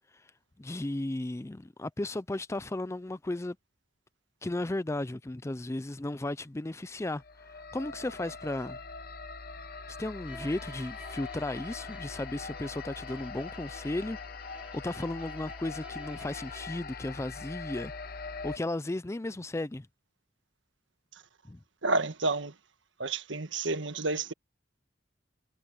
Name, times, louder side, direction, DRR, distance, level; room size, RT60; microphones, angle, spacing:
voice 1, 0.6-3.6 4.4-7.2 7.5-8.8 10.0-14.2 14.7-19.9 21.5-21.6, left 2 dB, 15° left, 0.4 m, -35 dB
sound 1, 7.0-18.6, left 4 dB, 50° left, 1.0 m, -42 dB
Bowed string instrument, 10.2-16.9, right 2 dB, 5° right, 2.7 m, -53 dB
voice 2, 21.8-22.5 23.0-24.3, right 3 dB, 75° right, 1.5 m, -30 dB
head